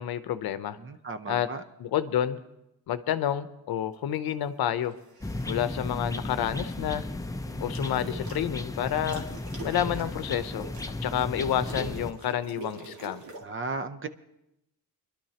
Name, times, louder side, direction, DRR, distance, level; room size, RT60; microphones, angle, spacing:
voice 1, 0.0-0.8 1.3-1.5 1.8-2.4 2.9-4.9 5.5-7.0 7.6-9.3 9.6-13.2, left 10 dB, 80° left, 12 dB, 0.8 m, -29 dB
voice 2, 0.8-1.6 13.4-14.1, right 3 dB, 35° right, 11 dB, 0.7 m, -35 dB
sound 1, 4.8-5.5 7.5-8.4 8.8-13.4, right 2 dB, 75° right, 2.0 m, -44 dB
sound 2, 5.2-12.1, left 2 dB, 10° left, 0.5 m, -35 dB
24.0 x 11.5 x 2.9 m, 0.87 s
cardioid pair, 115°, 36 cm